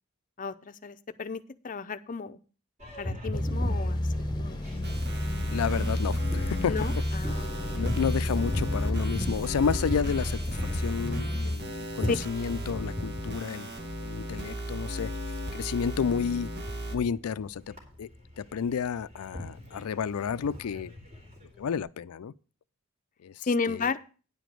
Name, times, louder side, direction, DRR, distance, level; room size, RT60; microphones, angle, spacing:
voice 1, 0.4-2.4 3.0-4.0 4.4-4.6 6.7-7.9 12.1-12.2 23.4-24.0, left 4 dB, 40° left, 0.6 m, -33 dB
Boat Water vehicle, 2.8-21.8, left 1 dB, 35° right, 2.9 m, -40 dB
sound 1, 3.3-11.6, left 1 dB, 20° left, 1.0 m, -30 dB
sound 2, 4.8-17.0, equal, 50° right, 1.7 m, -37 dB
voice 2, 5.5-6.8 7.7-13.7 14.0-15.1 15.5-16.5 16.9-18.1 18.4-20.9 21.6-22.3 23.2-23.4 23.7-23.9, left 6 dB, 85° left, 0.4 m, -31 dB
9.9 x 5.1 x 7.6 m
head